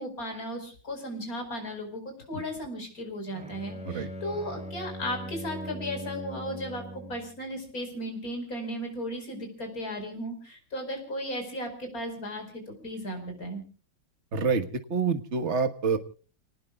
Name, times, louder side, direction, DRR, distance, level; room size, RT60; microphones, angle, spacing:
voice 1, 0.0-13.6, equal, 45° left, 4 dB, 5.4 m, -36 dB
Bowed string instrument, 3.3-7.4, right 1 dB, 5° right, 3.7 m, -40 dB
voice 2, 14.3-16.0, right 5 dB, 40° right, 8 dB, 1.6 m, -27 dB
29.5 x 19.0 x 2.4 m, 0.38 s
omnidirectional pair, 2.2 m